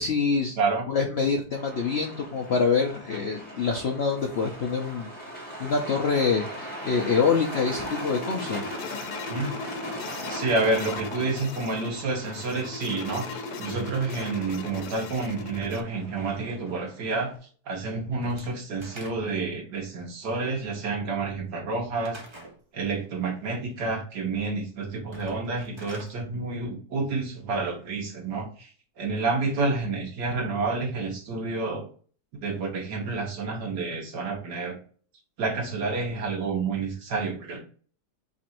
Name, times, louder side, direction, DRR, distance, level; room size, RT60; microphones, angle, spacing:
voice 1, 0.0-0.6 0.9-5.1 5.6-8.6, left 5 dB, 70° left, 1 dB, 0.6 m, -25 dB
voice 2, 0.6-0.9 9.3-9.5 10.3-17.3 17.7-22.2 22.7-28.7 29.0-31.9 32.4-34.8 35.4-37.6, right 3 dB, 75° right, 0 dB, 1.9 m, -29 dB
Truck, 1.5-17.4, right 1 dB, 5° left, 1.1 m, -40 dB
sound 1, 6.5-15.8, left 5 dB, 90° left, 1.2 m, -38 dB
Slam / Wood, 18.2-19.5 22.0-22.6 25.0-26.1, right 1 dB, 30° right, 0.5 m, -46 dB
3.9 x 2.6 x 4.2 m, 0.42 s
omnidirectional pair, 1.8 m